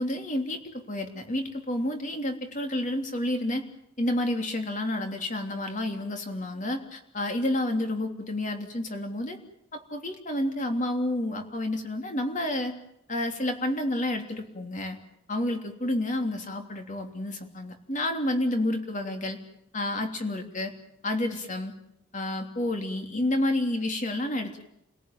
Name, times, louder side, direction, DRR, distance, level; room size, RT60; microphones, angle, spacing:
voice 1, 0.0-3.7 4.0-9.4 9.7-12.7 13.1-15.0 15.3-19.4 19.7-20.7 21.0-21.7 22.1-24.7, left 1 dB, 35° left, 4 dB, 3.3 m, -30 dB
29.5 x 18.0 x 9.1 m, 0.77 s
head